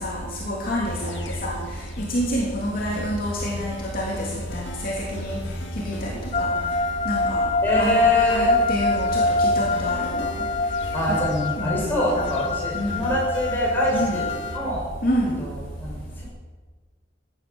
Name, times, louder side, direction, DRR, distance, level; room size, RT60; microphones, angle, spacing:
voice 1, 0.0-5.4 5.7-6.5 7.0-7.5 7.8-10.5 11.1-11.2 11.6-12.0 12.7-13.1 13.9-14.2 15.0-15.4, equal, 50° left, -3 dB, 3.2 m, -28 dB
sound 1, 0.9-14.6, left 1 dB, 70° left, 2.0 m, -38 dB
sound 2, 6.3-14.7, left 2 dB, 30° left, 0.5 m, -26 dB
voice 2, 7.6-8.6 10.9-14.8 15.4-16.3, equal, 10° left, -4 dB, 6.4 m, -24 dB
17.0 x 11.0 x 7.2 m, 1.4 s
head